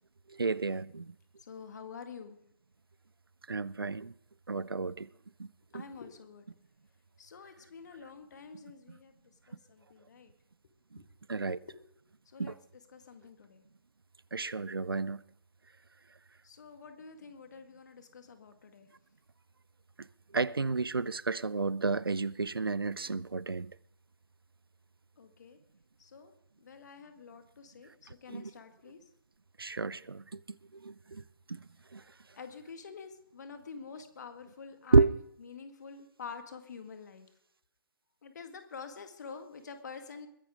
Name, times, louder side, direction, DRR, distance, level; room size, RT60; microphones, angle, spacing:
voice 1, 0.3-1.1 3.5-4.1 4.5-5.1 5.4-5.5 5.7-5.8 10.9-11.0 11.3-11.6 12.4-12.5 14.3-15.2 20.0-20.1 20.3-23.8 28.3-28.5 29.6-30.4 30.7-31.2 31.5-31.6 31.9-32.0 34.9-35.1, right 4 dB, 80° right, 0.5 m, -30 dB
voice 2, 1.4-2.4 5.7-6.5 7.2-9.2 9.5-10.3 11.0-11.1 11.5-11.8 12.3-13.6 16.4-18.9 25.2-25.6 26.0-26.3 26.6-29.0 32.3-37.3 38.2-40.3, left 5 dB, 50° left, 2.0 m, -48 dB
21.5 x 10.5 x 3.8 m
figure-of-eight pair, 135°, 12 cm